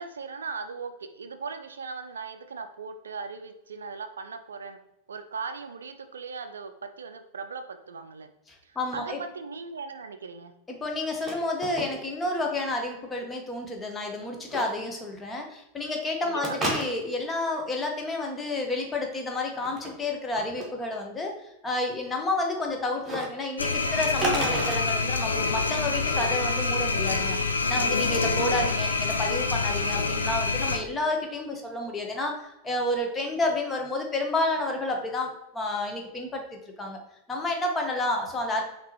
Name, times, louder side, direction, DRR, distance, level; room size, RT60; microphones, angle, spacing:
voice 1, 0.0-4.8 5.1-8.3 8.6-10.5 16.2-16.7, right 4 dB, 75° right, 9 dB, 0.4 m, -38 dB
voice 2, 8.5-9.2 10.7-27.4 27.7-37.0 37.3-38.6, left 2 dB, 15° left, 2 dB, 1.0 m, -30 dB
sound 1, 11.0-11.3 11.6-12.3 12.5-12.6 14.5-14.7 16.4-17.2 19.5-19.9 20.4-20.7 23.0-23.3 24.1-24.8, right 2 dB, 20° right, 1.3 m, -30 dB
sound 2, 23.6-30.8, left 3 dB, 80° left, 0.4 m, -26 dB
5.9 x 2.9 x 2.9 m, 0.87 s
figure-of-eight pair, 90°, 0 cm